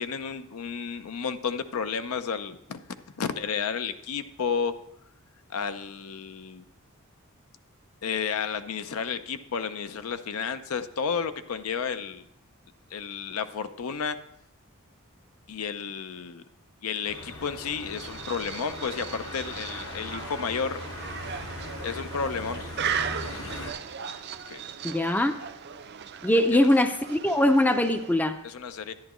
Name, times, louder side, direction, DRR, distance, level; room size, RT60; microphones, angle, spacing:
voice 1, 0.0-4.7 5.5-6.6 8.0-12.2 12.9-14.2 15.5-16.4 16.8-20.8 21.8-22.6 24.5-24.6 26.5-26.7 28.4-28.9, left 6 dB, 80° left, 11 dB, 0.5 m, -32 dB
sound 1, 17.0-23.7, left 2 dB, 65° left, 1.2 m, -39 dB
sound 2, 17.9-28.3, right 7 dB, 50° right, 0.4 m, -37 dB
voice 2, 24.8-25.4 26.2-28.4, left 1 dB, 10° left, 8 dB, 0.4 m, -22 dB
11.0 x 10.0 x 3.0 m, 0.77 s
head